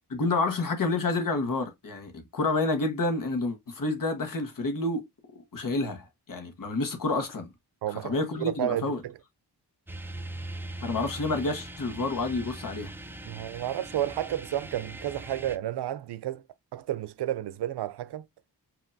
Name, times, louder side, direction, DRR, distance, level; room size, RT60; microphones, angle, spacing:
voice 1, 0.1-5.1 5.3-7.5 7.9-9.0 10.8-12.9, left 3 dB, 55° left, 1.3 m, -29 dB
voice 2, 7.8-9.2 13.2-16.4 16.7-18.3, right 12 dB, 80° right, 0.5 m, -31 dB
sound 1, 9.9-15.6, right 1 dB, 5° right, 0.4 m, -41 dB
5.5 x 2.9 x 2.6 m
wide cardioid pair, 125°, 40 cm